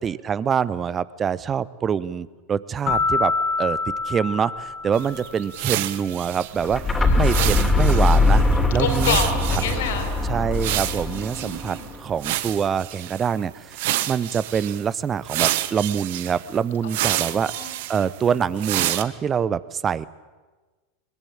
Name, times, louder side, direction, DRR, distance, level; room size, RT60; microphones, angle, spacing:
voice 1, 0.0-8.4 8.7-9.2 9.5-9.6 10.2-17.5 17.9-20.1, right 7 dB, 25° right, 19 dB, 0.9 m, -25 dB
sound 1, 2.9-5.6, left 4 dB, 30° left, 2.6 m, -26 dB
sound 2, 4.9-11.8 12.2-13.3 13.7-14.8 15.2-19.0, right 15 dB, 55° right, 1.0 m, -29 dB
sound 3, 6.6-12.4, left 2 dB, 10° left, 3.3 m, -21 dB
voice 2, 7.0-7.7 8.8-10.1 10.9-11.9 13.9-14.1 16.8-17.7, left 6 dB, 65° left, 8 dB, 4.1 m, -30 dB
21.5 x 21.5 x 8.7 m, 1.3 s
figure-of-eight pair, 90°, 0 cm